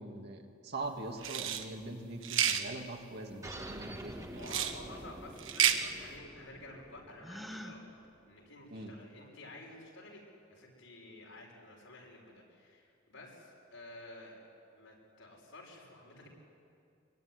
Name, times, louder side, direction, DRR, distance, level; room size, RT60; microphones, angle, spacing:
voice 1, 0.0-4.3 8.7-8.9, right 2 dB, 55° right, 2 dB, 2.8 m, -42 dB
sound 1, 1.2-1.6 2.2-2.6 4.4-4.7 5.4-5.8, right 9 dB, 80° right, 1.4 m, -29 dB
sound 2, 3.4-8.5, right 1 dB, 15° right, 1.8 m, -48 dB
voice 2, 4.3-7.8 8.3-10.2 10.5-14.4 14.7-16.3, left 2 dB, 80° left, -1 dB, 7.0 m, -51 dB
Gasp, 7.2-7.8, equal, ahead, 1.8 m, -44 dB
25.0 x 22.0 x 10.0 m, 2.4 s
head